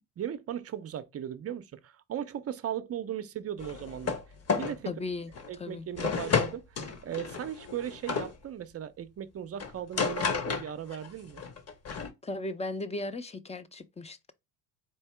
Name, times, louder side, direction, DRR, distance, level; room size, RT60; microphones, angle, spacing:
voice 1, 0.2-4.2 4.6-4.9 5.5-6.6 7.0-11.4, right 10 dB, 30° right, 0.6 m, -37 dB
sound 1, 3.6-4.2 4.5-4.8 5.3-5.5 6.0-8.3 9.6-11.1 11.4-12.1, left 5 dB, 35° left, 1.1 m, -31 dB
voice 2, 4.9-5.9 12.2-14.3, left 2 dB, 15° left, 0.5 m, -37 dB
4.5 x 2.7 x 3.3 m
hypercardioid pair, 75°, 45 cm